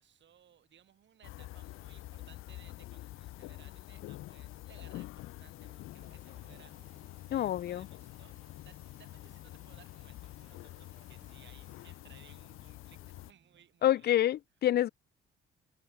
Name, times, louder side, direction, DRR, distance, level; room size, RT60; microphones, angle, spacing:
voice 1, 0.0-8.4 8.6-14.2, right 10 dB, 60° right, 4.8 m, -62 dB
sound 1, 1.2-13.3, left 16 dB, 80° left, 1.2 m, -47 dB
sound 2, 3.9-13.7, right 5 dB, 35° right, 4.7 m, -68 dB
sound 3, 6.0-11.9, right 15 dB, 80° right, 3.2 m, -69 dB
voice 2, 7.3-7.9 13.8-14.9, left 12 dB, 50° left, 0.4 m, -27 dB
cardioid pair, 85°, 21 cm